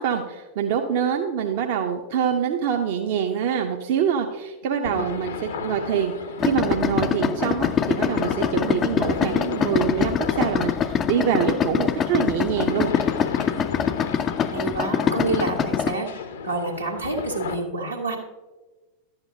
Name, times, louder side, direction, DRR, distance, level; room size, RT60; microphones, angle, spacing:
voice 1, 0.0-5.3 5.6-6.1 6.4-12.9, right 8 dB, 50° right, 3 dB, 0.6 m, -25 dB
sound 1, 4.8-17.6, left 5 dB, 65° left, 0.7 m, -34 dB
Idling, 6.4-16.0, left 7 dB, 25° left, 0.3 m, -24 dB
voice 2, 14.5-18.2, right 3 dB, 85° right, -2 dB, 1.5 m, -29 dB
11.0 x 8.1 x 2.7 m, 1.2 s
figure-of-eight pair, 90°, 0 cm